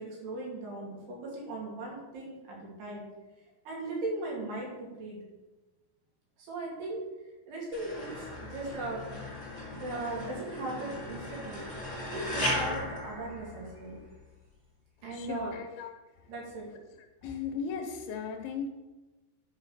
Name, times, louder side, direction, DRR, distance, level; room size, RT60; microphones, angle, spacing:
voice 1, 0.0-3.1 3.6-5.2 6.4-7.0 7.5-9.0 9.7-11.6 12.1-14.0 15.0-15.6 16.3-16.7, right 2 dB, 85° right, -4 dB, 4.9 m, -38 dB
sound 1, 7.7-14.0, left 1 dB, 20° left, 3.9 m, -37 dB
voice 2, 15.1-16.3 17.2-18.7, left 6 dB, 75° left, 3 dB, 2.7 m, -37 dB
10.0 x 5.1 x 6.6 m, 1.1 s
omnidirectional pair, 4.6 m